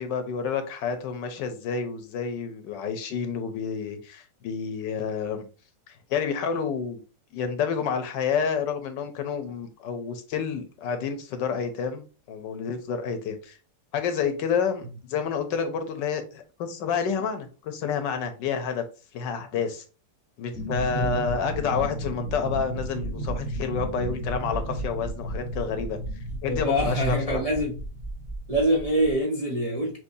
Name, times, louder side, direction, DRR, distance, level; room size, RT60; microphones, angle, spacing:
voice 1, 0.0-5.5 6.1-7.0 7.3-13.6 13.9-18.8 19.1-19.8 20.4-26.0 26.4-27.4, left 6 dB, 80° left, 1.4 m, -29 dB
sound 1, 20.5-29.1, right 1 dB, ahead, 1.0 m, -33 dB
voice 2, 20.9-21.2 26.5-27.8 28.5-30.0, equal, 35° right, 0.6 m, -25 dB
6.1 x 2.9 x 2.7 m
omnidirectional pair, 1.9 m